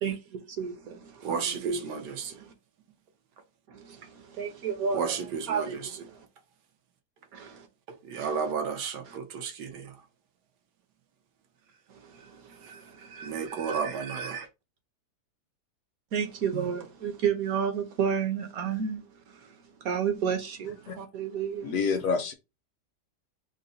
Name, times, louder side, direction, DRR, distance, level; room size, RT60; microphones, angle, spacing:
voice 1, 0.0-2.5 3.7-5.2 5.5-6.3 7.3-7.7 8.2-8.4 11.9-13.4 16.1-21.8, right 7 dB, 65° right, 1.1 m, -32 dB
voice 2, 1.2-2.3 4.9-5.9 7.9-10.0 12.2-12.3 12.6-14.5, right 6 dB, 85° right, 1.3 m, -33 dB
voice 3, 21.6-22.3, left 5 dB, 65° left, 0.9 m, -27 dB
3.9 x 2.1 x 3.8 m
omnidirectional pair, 1.7 m